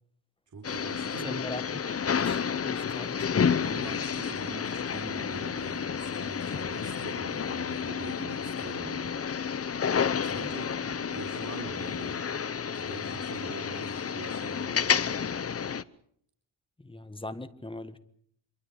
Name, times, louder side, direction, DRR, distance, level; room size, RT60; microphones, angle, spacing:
voice 1, 0.5-1.5 3.6-9.2 10.2-12.3 12.7-14.9, right 4 dB, 40° right, 2 dB, 4.2 m, -44 dB
sound 1, 0.6-15.8, left 7 dB, 30° left, 0.8 m, -30 dB
voice 2, 1.2-3.4 16.8-18.0, left 2 dB, 10° left, 11 dB, 1.5 m, -41 dB
26.5 x 23.0 x 5.1 m, 0.66 s
wide cardioid pair, 135°, 48 cm